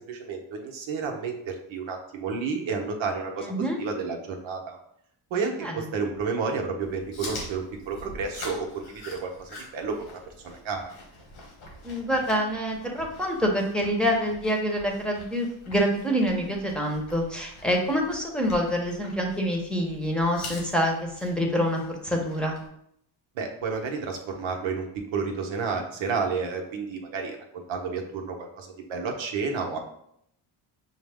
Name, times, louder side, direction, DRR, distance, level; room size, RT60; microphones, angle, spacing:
voice 1, 0.1-3.5 3.8-4.8 5.3-11.0 23.4-29.8, right 5 dB, 75° right, 2 dB, 0.9 m, -31 dB
voice 2, 3.4-3.8 5.6-5.9 11.8-20.9 21.2-22.6, equal, ahead, -1 dB, 0.9 m, -26 dB
Chewing mastication, 6.8-22.7, left 1 dB, 80° left, 1.5 m, -45 dB
5.6 x 2.1 x 3.5 m, 0.72 s
supercardioid pair, 65°, 48 cm